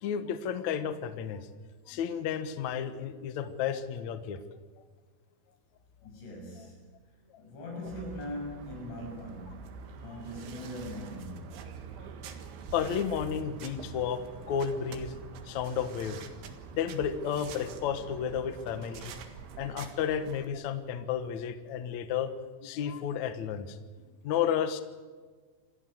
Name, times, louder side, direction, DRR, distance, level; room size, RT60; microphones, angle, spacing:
voice 1, 0.0-1.5 1.9-4.4 12.7-15.1 15.4-16.2 16.7-19.1 19.6-22.3 22.6-23.8 24.2-24.8, left 8 dB, 85° left, 10 dB, 1.6 m, -32 dB
voice 2, 6.0-7.0 7.4-11.7, left 1 dB, 70° left, 1 dB, 8.9 m, -41 dB
sound 1, 7.9-20.5, right 6 dB, 75° right, 4.1 m, -45 dB
27.5 x 15.0 x 7.9 m, 1.5 s
omnidirectional pair, 5.5 m